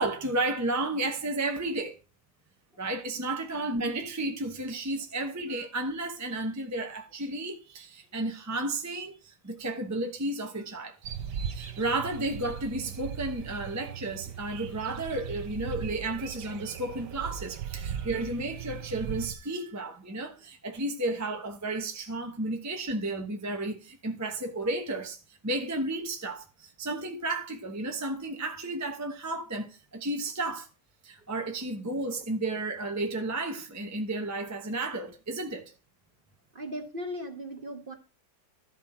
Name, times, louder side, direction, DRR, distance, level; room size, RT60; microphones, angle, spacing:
voice 1, 0.0-2.0 2.8-11.0 11.5-30.7 31.0-35.7, right 2 dB, 15° right, 0.8 m, -32 dB
sound 1, 11.0-19.3, right 8 dB, 75° right, 1.6 m, -38 dB
voice 2, 36.5-38.0, equal, 35° right, 1.3 m, -37 dB
13.0 x 5.9 x 4.3 m
omnidirectional pair, 1.8 m